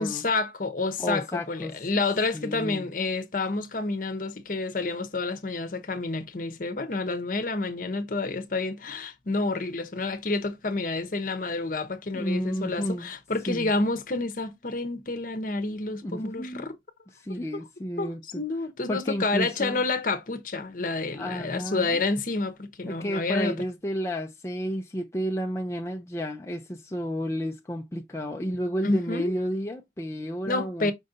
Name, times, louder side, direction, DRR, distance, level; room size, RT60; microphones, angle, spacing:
voice 1, 0.0-16.7 18.0-23.5 28.8-29.3 30.5-30.9, left 3 dB, 45° left, 0.8 m, -29 dB
voice 2, 1.0-1.7 2.3-2.9 12.1-13.1 13.5-13.7 16.0-16.7 17.1-18.4 18.9-19.8 21.1-22.0 22.9-30.9, equal, 15° left, 0.4 m, -31 dB
5.3 x 2.6 x 3.7 m
head